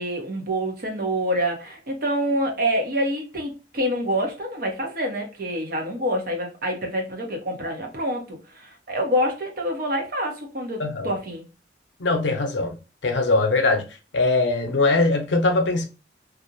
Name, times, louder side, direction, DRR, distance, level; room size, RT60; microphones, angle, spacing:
voice 1, 0.0-11.4, equal, 55° right, 0.8 m, -26 dB
voice 2, 10.8-11.1 12.0-12.8 13.0-13.8 14.1-15.9, left 3 dB, 90° left, 0.6 m, -21 dB
2.4 x 2.0 x 2.7 m
head